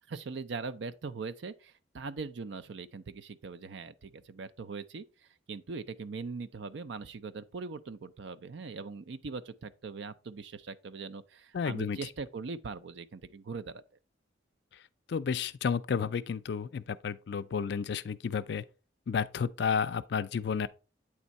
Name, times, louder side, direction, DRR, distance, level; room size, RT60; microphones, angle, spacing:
voice 1, 0.1-13.8, right 4 dB, 65° right, 0.5 m, -41 dB
voice 2, 11.5-12.0 15.1-18.6 19.1-20.7, left 6 dB, 60° left, 0.4 m, -31 dB
8.5 x 3.5 x 4.1 m
head